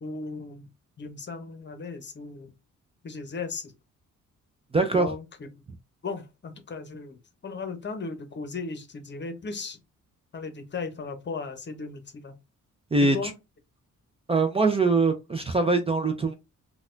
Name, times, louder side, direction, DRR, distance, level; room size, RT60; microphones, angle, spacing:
voice 1, 0.0-0.7 1.0-2.5 3.0-3.7 4.9-5.2 6.0-9.8 10.3-12.3 13.1-13.3, left 4 dB, 35° left, 0.8 m, -36 dB
voice 2, 4.7-5.1 12.9-13.3 14.3-16.3, right 3 dB, 20° right, 0.4 m, -23 dB
3.9 x 2.3 x 2.5 m
cardioid pair, 110°, 31 cm